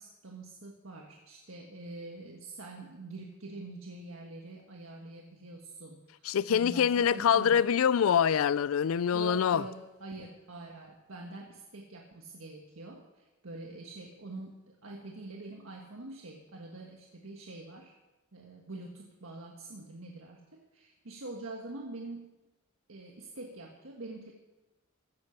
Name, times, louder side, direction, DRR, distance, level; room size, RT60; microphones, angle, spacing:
voice 1, 0.0-7.6 9.1-17.9 18.3-22.3 22.9-24.3, right 2 dB, 85° right, 1.5 m, -45 dB
voice 2, 6.2-9.6, left 8 dB, 85° left, 0.4 m, -25 dB
15.5 x 10.0 x 5.9 m
head